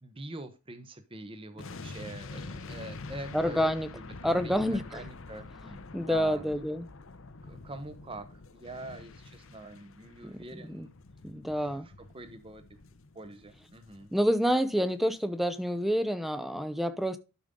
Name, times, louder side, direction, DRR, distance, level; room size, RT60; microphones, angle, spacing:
voice 1, 0.0-6.6 7.4-10.9 11.5-12.6 13.1-14.1, right 2 dB, 25° right, 1.0 m, -45 dB
sound 1, 1.6-14.7 15.0-15.2, left 3 dB, 60° left, 0.8 m, -46 dB
voice 2, 3.3-3.9 4.2-5.0 5.6-6.9 10.2-10.4 10.6-10.9 11.2-11.9 14.1-17.2, equal, ahead, 0.6 m, -28 dB
12.5 x 5.2 x 3.8 m
head